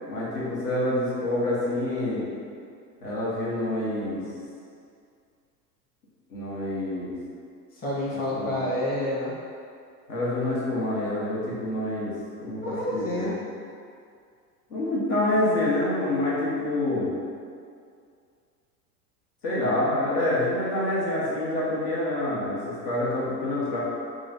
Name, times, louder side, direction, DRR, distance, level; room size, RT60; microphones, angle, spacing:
voice 1, 0.1-2.3 3.0-4.2 6.3-7.1 8.3-8.6 10.1-12.1 12.4-13.3 14.7-17.1 19.4-23.8, left 1 dB, 65° left, -7 dB, 1.2 m, -27 dB
voice 2, 7.8-9.3 12.6-13.3, left 1 dB, 20° left, -7 dB, 0.9 m, -28 dB
3.1 x 2.4 x 4.0 m, 2.3 s
figure-of-eight pair, 85°, 50 cm